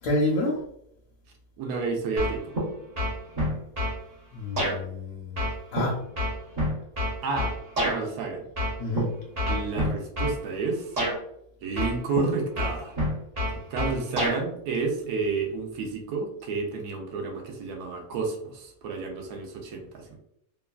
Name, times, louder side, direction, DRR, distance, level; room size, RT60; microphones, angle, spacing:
voice 1, 0.0-0.6 4.3-5.4 5.7-6.0 8.8-9.1, left 1 dB, 75° left, -2 dB, 1.1 m, -28 dB
voice 2, 1.6-2.5 7.2-7.5 7.8-8.4 9.5-10.9 11.6-12.9 13.7-20.2, right 4 dB, 70° right, 2 dB, 1.0 m, -30 dB
sound 1, 2.2-2.7 3.0-4.0 4.6-4.8 5.4-8.0 8.6-9.0 9.4-10.4 11.0-11.2 11.8-12.3 12.6-14.4, equal, 40° right, 0.5 m, -27 dB
3.0 x 2.3 x 2.3 m, 0.77 s
omnidirectional pair, 1.7 m